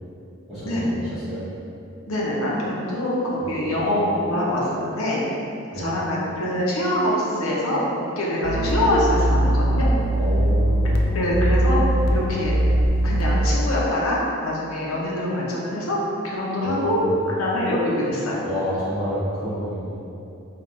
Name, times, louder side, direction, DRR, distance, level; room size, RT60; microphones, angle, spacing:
voice 1, 0.5-1.4 3.4-3.8 5.7-5.9 10.2-10.9 16.6-17.1 18.4-20.0, equal, ahead, -16 dB, 1.1 m, -29 dB
voice 2, 2.1-5.2 5.8-9.9 10.8-12.5 13.0-14.2 14.4-16.0 16.2-17.0 17.4-18.4, left 1 dB, 80° left, -5 dB, 0.7 m, -24 dB
sound 1, 8.4-13.5, right 1 dB, 50° left, 0.3 m, -21 dB
3.4 x 2.4 x 3.8 m, 2.7 s
head